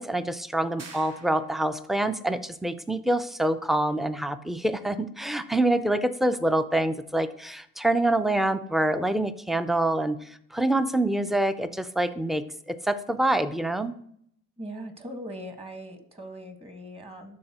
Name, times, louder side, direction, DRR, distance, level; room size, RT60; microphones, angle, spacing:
voice 1, 0.0-14.0, right 1 dB, ahead, 12 dB, 0.4 m, -26 dB
sound 1, 0.8-1.9, right 4 dB, 55° right, 1.3 m, -47 dB
voice 2, 14.6-17.4, equal, 20° right, 5 dB, 1.4 m, -40 dB
12.0 x 4.1 x 2.9 m, 0.67 s
cardioid pair, 90°, 30 cm